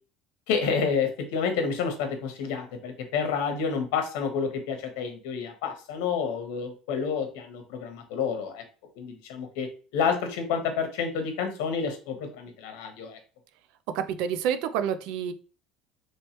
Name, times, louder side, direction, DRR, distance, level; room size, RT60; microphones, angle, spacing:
voice 1, 0.5-8.6 9.0-13.2, left 6 dB, 85° left, 5 dB, 0.9 m, -29 dB
voice 2, 13.9-15.3, right 8 dB, 70° right, 10 dB, 0.4 m, -28 dB
3.1 x 3.1 x 2.9 m, 0.37 s
cardioid pair, 145°, 0 cm